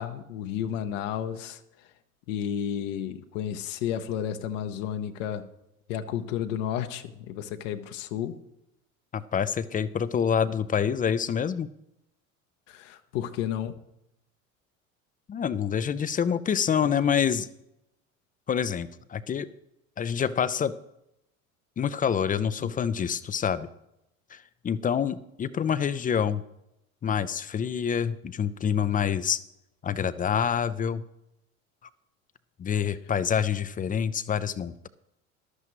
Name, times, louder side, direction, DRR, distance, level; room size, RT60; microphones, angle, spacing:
voice 1, 0.0-1.9 2.3-5.5 5.9-8.4 12.7-13.8 22.6-22.7, left 9 dB, 65° left, 7 dB, 0.9 m, -32 dB
voice 2, 9.1-11.7 15.3-17.5 18.5-19.5 20.0-20.8 21.8-23.7 24.3-26.4 27.0-29.4 29.8-31.0 32.6-34.9, left 7 dB, 20° left, 16 dB, 0.5 m, -27 dB
14.5 x 12.0 x 3.1 m, 0.84 s
hypercardioid pair, 70°, 41 cm